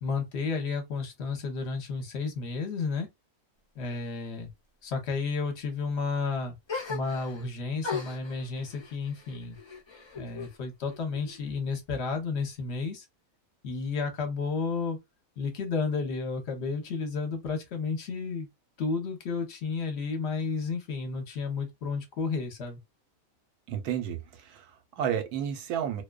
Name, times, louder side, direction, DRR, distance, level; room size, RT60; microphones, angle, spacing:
voice 1, 0.0-3.1 3.8-4.5 4.8-6.6 6.9-9.6 10.2-13.0 13.6-15.0 15.4-18.5 18.8-22.8, left 4 dB, 55° left, 0.9 m, -32 dB
sound 1, 6.7-7.5 7.8-10.6 10.9-11.7, left 5 dB, 35° left, 0.4 m, -39 dB
voice 2, 23.7-26.0, right 9 dB, 80° right, 1.1 m, -32 dB
2.5 x 2.2 x 2.2 m
omnidirectional pair, 1.6 m